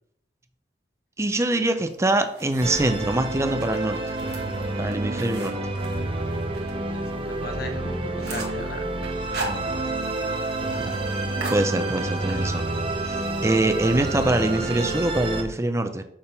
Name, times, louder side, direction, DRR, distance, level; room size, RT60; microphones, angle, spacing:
voice 1, 1.2-4.0 4.8-5.6 9.5-9.9 10.8-11.0 11.5-12.7 13.0-16.0, right 2 dB, 15° right, 8 dB, 0.5 m, -24 dB
sound 1, 1.9-3.0 3.5-6.7 7.1-7.2 7.6-7.7 7.9-8.6 9.0-10.1 10.4-10.5 10.8-11.0 11.4-12.2, right 2 dB, 65° right, 1.7 m, -37 dB
Musical instrument, 2.6-15.4, right 2 dB, 30° right, 0.9 m, -29 dB
voice 2, 6.9-8.8 9.8-10.1 10.7-10.9, left 2 dB, 60° left, 6 dB, 1.1 m, -37 dB
6.6 x 3.6 x 5.7 m, 0.75 s
head